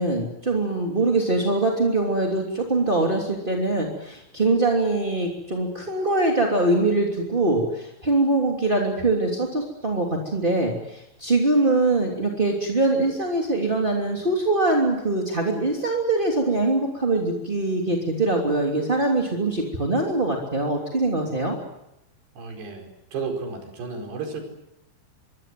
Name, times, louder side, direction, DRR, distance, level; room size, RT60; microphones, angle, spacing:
voice 1, 0.0-21.6, right 2 dB, 15° right, 0 dB, 1.7 m, -23 dB
voice 2, 22.3-24.4, right 4 dB, 55° right, 4 dB, 6.8 m, -33 dB
26.0 x 23.5 x 7.7 m, 0.86 s
omnidirectional pair, 6.0 m